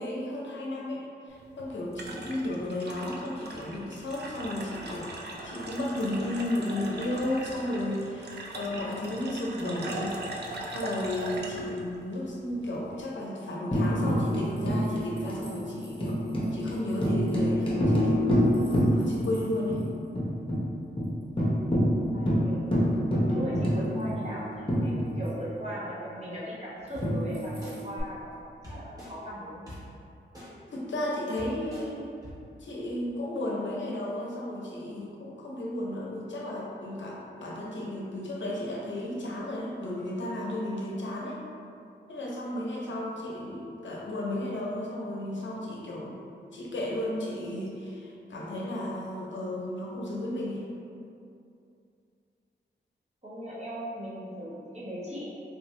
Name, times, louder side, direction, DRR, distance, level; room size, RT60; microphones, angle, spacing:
voice 1, 0.0-10.2 10.7-16.2 16.5-18.6 18.9-19.9 30.7-32.1 32.6-41.4 42.1-46.2 46.5-50.7, left 1 dB, 80° left, -3 dB, 0.6 m, -33 dB
sound 1, 1.3-13.0, right 2 dB, 60° right, 0.4 m, -40 dB
Tambourine, 13.7-19.4 19.7-19.8 20.1-20.6 21.0-21.1 21.4-25.5 27.0-28.0, equal, 25° left, 0.8 m, -27 dB
voice 2, 21.9-28.4 28.7-29.6 53.2-55.3, equal, 35° right, -9 dB, 1.0 m, -38 dB
sound 2, 26.9-27.1 27.6-27.7 28.6-29.1 29.7-29.8 30.3-30.5 31.0-31.1 31.4-31.8 32.2-32.3, left 1 dB, 20° right, 1.2 m, -44 dB
3.3 x 2.6 x 3.1 m, 2.6 s
wide cardioid pair, 100°, 19 cm